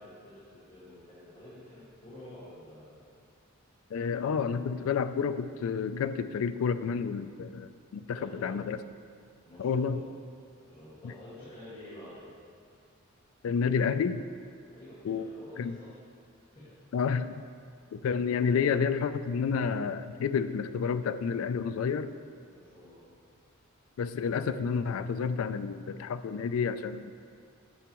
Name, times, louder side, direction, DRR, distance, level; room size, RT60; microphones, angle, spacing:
voice 1, 0.0-3.1 8.1-8.6 9.5-10.0 10.6-12.4 14.6-15.9 16.4-16.7 18.3-18.5 22.5-23.0, left 1 dB, 25° left, -11 dB, 1.8 m, -49 dB
voice 2, 3.9-8.8 9.6-10.0 11.0-11.1 13.4-14.2 15.0-15.3 15.6-15.8 16.9-17.3 17.9-22.1 24.0-27.1, left 6 dB, 70° left, 11 dB, 0.3 m, -30 dB
10.0 x 6.1 x 3.0 m, 2.2 s
head